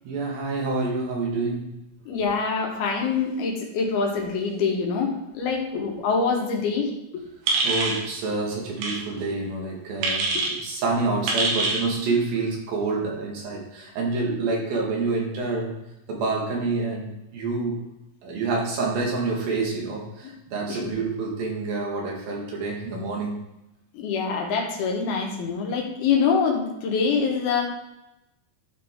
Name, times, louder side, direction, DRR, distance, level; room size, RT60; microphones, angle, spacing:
voice 1, 0.1-1.7 7.6-15.8 16.1-17.8 18.2-23.5, right 3 dB, 70° right, -1 dB, 3.5 m, -27 dB
voice 2, 2.1-6.9 20.7-20.9 23.9-27.6, left 5 dB, 80° left, 0 dB, 3.4 m, -25 dB
sound 1, 7.5-8.0 8.8-9.0 10.0-10.5 11.3-11.8, right 3 dB, 90° right, 3.5 m, -24 dB
12.5 x 5.1 x 3.7 m, 0.89 s
omnidirectional pair, 4.4 m